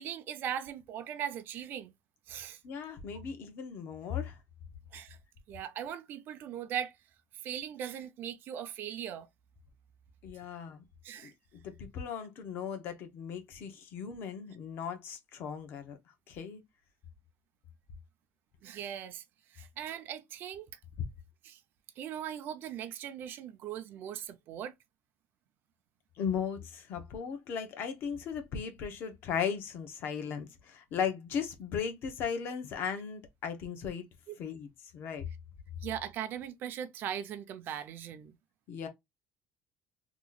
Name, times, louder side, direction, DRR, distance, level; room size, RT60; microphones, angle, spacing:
voice 1, 0.0-1.9 2.3-2.6 4.9-5.2 5.5-7.0 7.4-9.3 11.0-11.3 18.6-19.2 19.5-20.7 21.4-21.6 22.0-24.7 34.3-34.4 35.8-38.4, right 9 dB, 50° right, 0.5 m, -39 dB
voice 2, 2.6-4.4 10.2-10.8 11.2-11.3 11.6-16.0 16.3-16.6 26.2-34.1 34.4-35.2 38.7-38.9, left 7 dB, 55° left, 0.9 m, -37 dB
3.0 x 2.4 x 3.8 m
cardioid pair, 155°, 4 cm